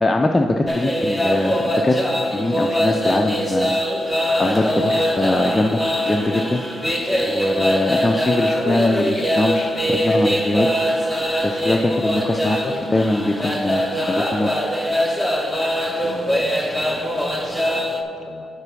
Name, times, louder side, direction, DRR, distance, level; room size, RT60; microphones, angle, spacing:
voice 1, 0.0-2.0 2.3-3.7 4.4-6.6 7.3-10.7 11.4-12.6 12.9-14.5, left 2 dB, 15° left, 2 dB, 0.4 m, -22 dB
sound 1, 0.7-18.0, equal, ahead, 0.8 m, -22 dB
voice 2, 12.5-12.8 15.8-18.5, left 3 dB, 35° left, 6 dB, 0.8 m, -38 dB
6.6 x 4.7 x 6.1 m, 2.5 s
cardioid pair, 90°, 0 cm